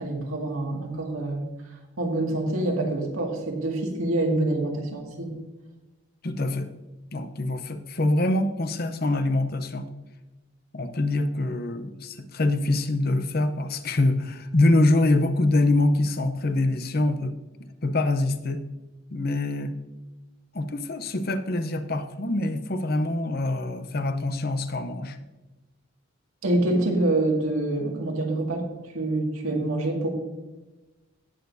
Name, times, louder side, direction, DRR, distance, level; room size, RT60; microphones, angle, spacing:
voice 1, 0.0-1.4 2.0-5.3 26.4-28.7 28.9-30.1, right 2 dB, 90° right, 0 dB, 2.1 m, -26 dB
voice 2, 6.2-6.7 7.1-9.9 10.7-17.3 17.8-18.6 19.1-19.7 20.5-25.2, left 2 dB, 45° left, 9 dB, 0.7 m, -24 dB
18.0 x 6.9 x 2.7 m, 1.1 s
head